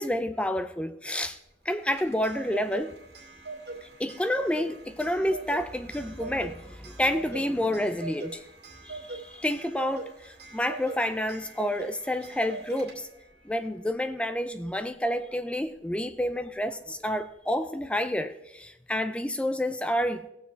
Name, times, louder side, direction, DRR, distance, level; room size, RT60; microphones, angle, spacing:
voice 1, 0.0-1.4 1.7-3.0 3.8-8.4 8.8-13.1 13.4-20.3, left 1 dB, 5° left, 0.4 m, -29 dB
Clock, 1.7-13.3, right 3 dB, 70° right, 2.2 m, -42 dB
18.0 x 7.1 x 3.4 m
head